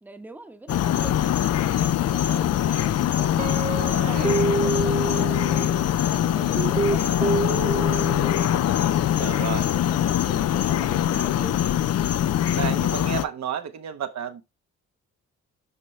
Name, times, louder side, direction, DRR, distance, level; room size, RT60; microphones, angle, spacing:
voice 1, 0.0-5.8 6.1-11.6, right 2 dB, 5° right, 1.0 m, -43 dB
sound 1, 0.7-13.3, left 11 dB, 55° left, 0.5 m, -23 dB
Guitar, 3.4-5.8 6.5-8.5, right 4 dB, 25° right, 0.7 m, -27 dB
voice 2, 3.8-4.4 9.2-9.7 12.5-14.4, right 9 dB, 65° right, 1.1 m, -32 dB
12.0 x 4.4 x 3.2 m
cardioid pair, 90°, 30 cm